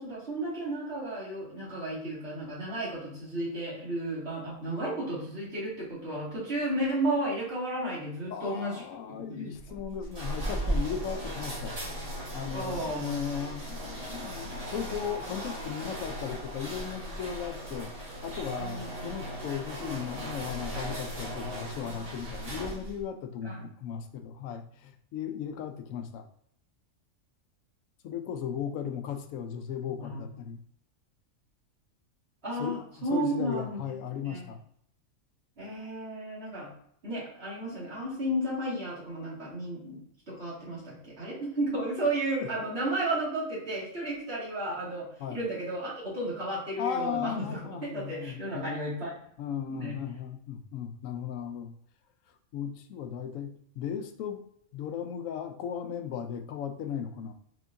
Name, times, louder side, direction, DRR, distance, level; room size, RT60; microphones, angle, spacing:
voice 1, 0.0-8.8 9.3-9.5 12.5-13.1 18.6-19.2 23.4-23.7 29.8-30.2 32.4-34.0 34.2-34.4 35.6-36.7 37.0-40.0 40.3-49.1 49.5-50.0, right 1 dB, 45° right, -7 dB, 2.3 m, -33 dB
voice 2, 8.3-11.7 12.3-26.3 28.0-30.6 32.6-34.6 42.4-42.5 45.2-45.4 46.8-48.7 49.4-51.7 52.5-54.4 54.7-57.3, left 8 dB, 75° left, 7 dB, 0.9 m, -36 dB
sound 1, 9.5-23.0, right 1 dB, 30° right, 1.2 m, -37 dB
4.5 x 4.3 x 2.5 m, 0.69 s
omnidirectional pair, 1.5 m